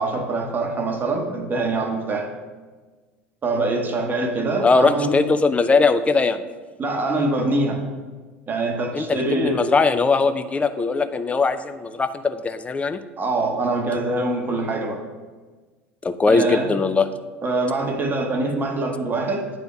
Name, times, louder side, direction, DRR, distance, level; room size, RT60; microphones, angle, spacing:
voice 1, 0.0-2.3 3.4-5.2 6.8-7.9 8.5-9.6 13.2-15.0 16.3-16.7 17.4-19.5, right 2 dB, 25° right, 3 dB, 0.9 m, -24 dB
voice 2, 4.6-6.4 8.9-13.0 16.0-17.1, left 4 dB, 20° left, 10 dB, 0.4 m, -20 dB
9.2 x 3.5 x 4.0 m, 1.4 s
figure-of-eight pair, 75°, 7 cm